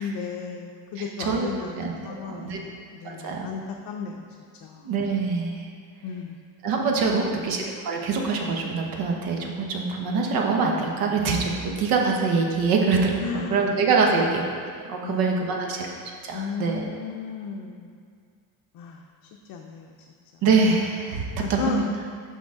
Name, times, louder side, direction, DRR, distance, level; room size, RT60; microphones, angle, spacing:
voice 1, 0.0-4.2 4.6-4.9 6.0-6.4 7.1-7.2 13.2-13.6 14.0-14.2 15.0-15.8 16.3-18.0 18.7-19.0 19.5-19.9 21.4-21.9, left 6 dB, 80° left, 1 dB, 0.6 m, -34 dB
voice 2, 1.0-2.6 3.0-3.5 4.8-5.7 6.6-14.4 14.9-15.9 16.2-16.8 20.4-21.8, right 4 dB, 80° right, 1 dB, 1.0 m, -24 dB
6.4 x 5.5 x 3.7 m, 2.2 s
cardioid pair, 145°, 35 cm